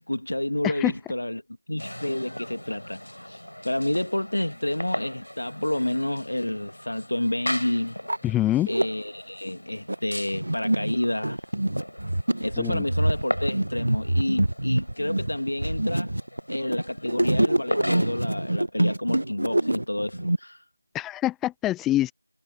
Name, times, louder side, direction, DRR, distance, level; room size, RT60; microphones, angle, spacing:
voice 1, 0.0-1.4 1.7-3.4 3.6-8.0 8.6-11.4 12.4-16.1 16.5-20.6, left 1 dB, 45° left, 2.5 m, -29 dB
sound 1, 1.8-18.6, equal, 70° left, 7.6 m, -38 dB
sound 2, 6.7-6.8 7.5-7.6 7.9-8.8 9.5-20.4, right 1 dB, 40° right, 1.4 m, -25 dB
voice 2, 8.2-8.7 12.6-12.8 20.9-22.1, left 14 dB, ahead, 0.5 m, -25 dB
figure-of-eight pair, 175°, 0 cm